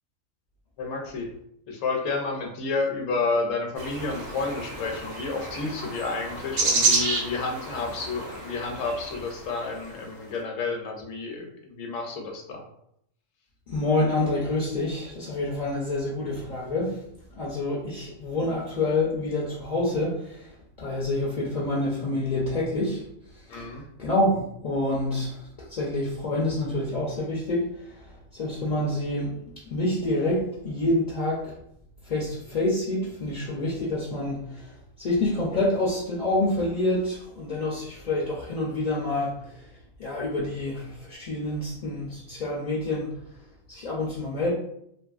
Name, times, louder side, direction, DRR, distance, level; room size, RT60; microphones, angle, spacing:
voice 1, 0.8-1.3 1.7-12.6 23.5-23.8, left 3 dB, 75° left, 2 dB, 1.0 m, -30 dB
sound 1, 3.8-10.0, right 3 dB, 55° right, 0.6 m, -30 dB
voice 2, 13.7-17.0 17.3-23.0 23.3-29.4 29.7-31.5 32.0-39.7 40.0-43.1 43.7-44.5, left 2 dB, 55° left, -5 dB, 0.4 m, -27 dB
2.6 x 2.5 x 2.3 m, 0.73 s
omnidirectional pair, 1.3 m